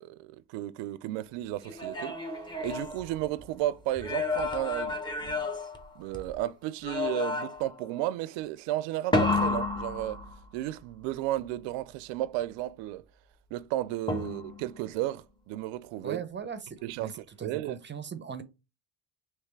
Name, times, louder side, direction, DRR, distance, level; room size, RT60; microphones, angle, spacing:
voice 1, 0.0-2.2 2.6-5.4 6.0-10.2 10.5-13.0 13.5-16.2 16.8-17.8, right 14 dB, 75° right, 0.5 m, -33 dB
sound 1, 1.6-3.5 4.0-6.4 6.8-7.8 9.1-10.7 14.1-14.7, left 3 dB, 10° left, 0.8 m, -31 dB
voice 2, 16.0-18.4, right 7 dB, 25° right, 0.6 m, -39 dB
3.3 x 3.1 x 3.1 m
supercardioid pair, 85°, 44 cm